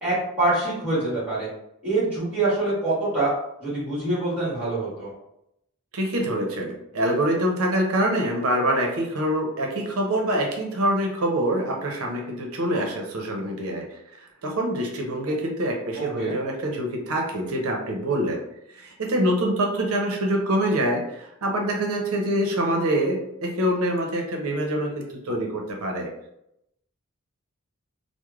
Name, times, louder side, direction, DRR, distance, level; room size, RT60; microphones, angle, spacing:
voice 1, 0.0-1.5 1.8-3.3 3.6-5.1 15.9-16.3, right 2 dB, 5° right, -9 dB, 1.2 m, -25 dB
voice 2, 5.9-13.8 14.4-18.4 18.8-26.1, right 1 dB, 75° right, 1 dB, 0.6 m, -25 dB
3.1 x 2.0 x 2.3 m, 0.80 s
head